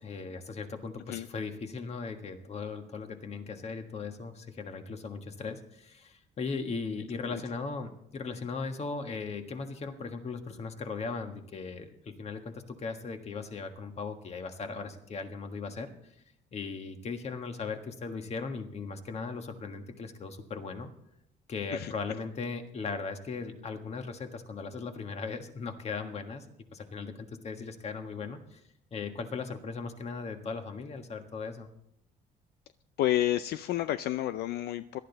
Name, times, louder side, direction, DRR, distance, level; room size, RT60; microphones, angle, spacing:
voice 1, 0.0-16.1 16.5-20.9 21.5-26.4 26.7-28.6 28.9-31.7, left 4 dB, 40° left, 6 dB, 1.6 m, -38 dB
voice 2, 33.0-35.0, left 13 dB, 70° left, 13 dB, 0.5 m, -30 dB
18.5 x 12.0 x 4.0 m, 0.75 s
cardioid pair, 110°, 17 cm